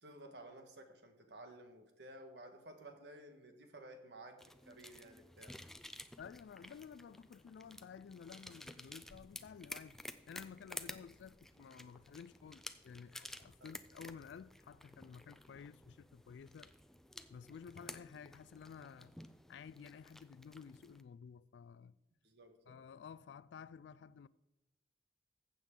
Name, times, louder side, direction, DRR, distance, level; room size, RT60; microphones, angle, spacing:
voice 1, 0.0-5.6 13.6-13.7 22.2-22.8, right 1 dB, 70° right, 1.4 m, -55 dB
sound 1, 4.4-21.0, left 1 dB, ahead, 0.4 m, -53 dB
voice 2, 6.2-10.0 10.3-16.7 17.3-19.1 19.5-22.0 22.7-24.3, left 6 dB, 75° left, 0.3 m, -53 dB
sound 2, 9.5-16.5, equal, 45° right, 2.8 m, -73 dB
15.0 x 7.3 x 3.7 m
head